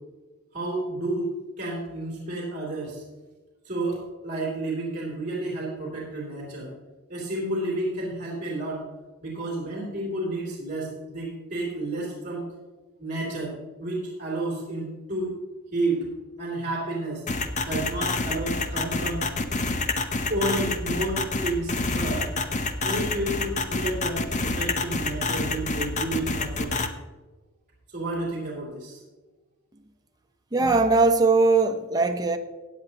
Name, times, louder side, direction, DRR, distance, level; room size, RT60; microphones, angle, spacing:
voice 1, 0.5-3.0 3.6-6.7 7.1-8.8 9.2-12.5 13.0-13.5 13.8-15.3 15.7-16.1 16.4-17.2 17.6-19.2 20.3-22.3 22.8-26.7 27.9-29.0, right 2 dB, 35° right, 2.9 m, -31 dB
sound 1, 17.3-26.9, left 3 dB, 35° left, 0.7 m, -27 dB
voice 2, 30.5-32.4, right 3 dB, 15° right, 0.7 m, -20 dB
16.0 x 9.3 x 2.9 m
head